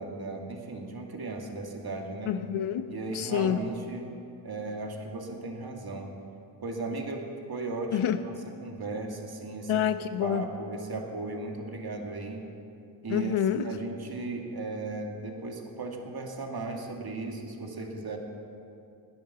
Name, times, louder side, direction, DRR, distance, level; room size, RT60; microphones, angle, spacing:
voice 1, 0.0-2.3 2.9-4.1 4.4-6.2 6.6-8.3 8.6-9.8 10.2-12.5 13.0-18.2, right 3 dB, 50° right, 2 dB, 2.4 m, -36 dB
voice 2, 2.3-3.6 7.9-8.2 9.7-10.5 13.1-13.6, left 10 dB, 75° left, 10 dB, 0.9 m, -28 dB
17.0 x 10.5 x 7.0 m, 2.5 s
cardioid pair, 55°, 49 cm